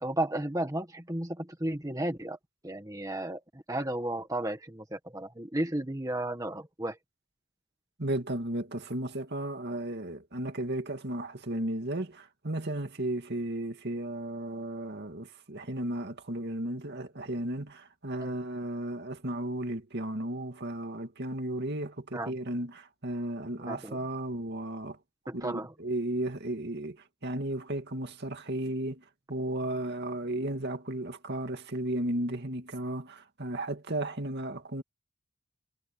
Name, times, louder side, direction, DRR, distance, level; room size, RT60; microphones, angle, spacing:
voice 1, 0.0-2.4 2.6-7.0 18.2-18.3 22.1-22.4 23.7-24.0 25.3-25.7, right 1 dB, 15° right, 1.7 m, -33 dB
voice 2, 8.0-25.0 25.3-34.8, right 1 dB, 50° right, 2.3 m, -34 dB
head